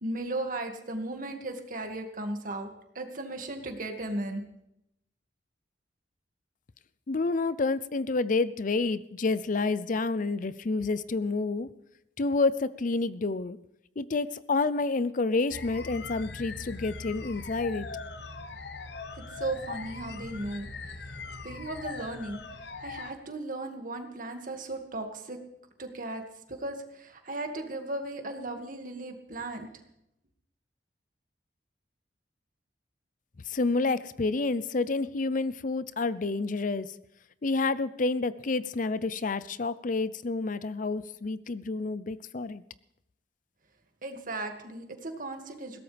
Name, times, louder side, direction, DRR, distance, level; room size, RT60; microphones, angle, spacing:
voice 1, 0.0-4.4 19.3-20.7 21.0-21.2 21.4-22.4 22.8-25.4 25.8-26.2 26.5-29.7 44.0-45.8, right 2 dB, 50° right, 4 dB, 2.1 m, -36 dB
voice 2, 7.1-11.7 12.2-13.6 14.0-17.9 33.5-36.9 37.4-42.6, left 3 dB, 50° left, 16 dB, 0.6 m, -29 dB
sound 1, 15.5-23.1, left 4 dB, 65° left, 1.0 m, -41 dB
20.5 x 17.0 x 3.4 m, 0.81 s
head